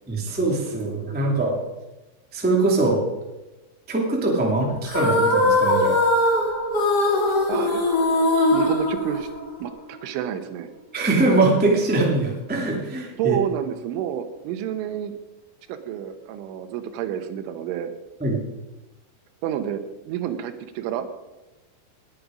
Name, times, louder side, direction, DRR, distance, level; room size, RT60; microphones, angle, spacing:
voice 1, 0.1-1.7 2.3-3.0 3.9-6.0 10.9-13.4 18.2-18.4, right 2 dB, 5° right, -1 dB, 0.7 m, -22 dB
sound 1, 4.8-9.7, left 1 dB, 40° left, 1.5 m, -21 dB
voice 2, 7.5-7.8 8.5-9.3 9.6-10.7 13.2-15.2 15.7-17.9 19.4-21.1, right 10 dB, 85° right, 9 dB, 3.4 m, -29 dB
19.0 x 8.7 x 5.1 m, 1.1 s
omnidirectional pair, 5.5 m